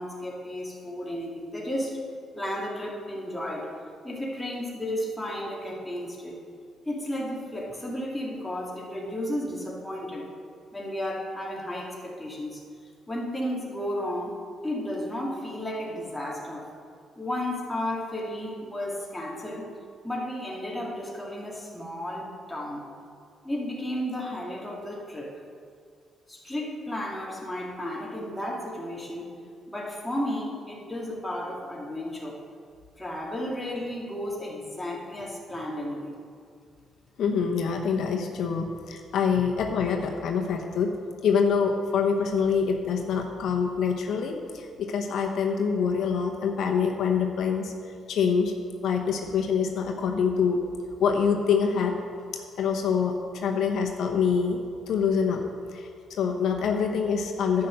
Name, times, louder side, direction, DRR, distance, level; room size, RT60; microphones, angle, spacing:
voice 1, 0.0-2.0 2.4-3.7 4.0-6.4 6.9-10.3 10.7-12.6 13.1-14.4 14.6-16.7 17.2-19.7 20.0-22.9 23.4-25.4 26.3-29.3 29.7-32.4 33.0-36.1 39.3-39.4, left 1 dB, 5° left, -2 dB, 2.2 m, -33 dB
voice 2, 37.2-40.9 41.2-47.7 48.1-48.5 48.8-50.6 51.0-52.0 52.6-54.6 54.9-55.4 55.7-57.7, left 6 dB, 70° left, 2 dB, 0.9 m, -25 dB
10.5 x 5.9 x 7.8 m, 2.3 s
cardioid pair, 90°, 0 cm